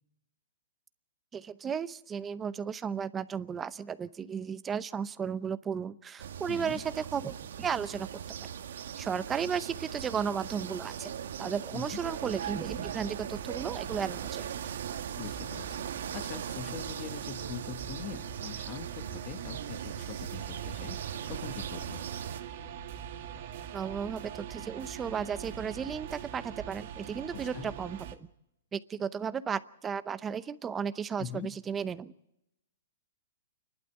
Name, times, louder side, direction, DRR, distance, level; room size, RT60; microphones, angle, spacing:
voice 1, 1.3-8.1 9.0-11.1 11.4-14.5 23.7-28.3 28.7-32.1, right 7 dB, 15° right, 14 dB, 0.7 m, -34 dB
sound 1, 6.2-22.4, right 8 dB, 75° right, 1.1 m, -39 dB
voice 2, 6.5-6.8 11.7-12.0 15.2-15.8 16.1-21.0 21.3-22.0 27.3-27.7 31.2-31.5, left 9 dB, 30° left, 10 dB, 1.3 m, -43 dB
sound 2, 12.0-28.2, right 9 dB, 50° right, 2.1 m, -43 dB
29.5 x 11.5 x 8.2 m, 0.85 s
hypercardioid pair, 155°, 0 cm